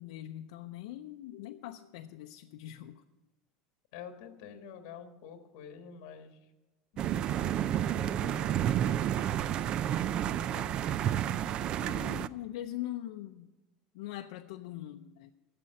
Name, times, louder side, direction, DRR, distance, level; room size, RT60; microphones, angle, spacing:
voice 1, 0.0-3.0 11.8-13.5 13.9-15.3, left 13 dB, 80° left, 4 dB, 0.6 m, -42 dB
voice 2, 3.9-6.5 6.9-9.1 10.1-10.8, left 7 dB, 60° left, 6 dB, 1.4 m, -49 dB
sound 1, 7.0-12.3, right 10 dB, 30° right, 0.3 m, -30 dB
12.0 x 7.6 x 7.6 m, 1.1 s
cardioid pair, 170°, 3 cm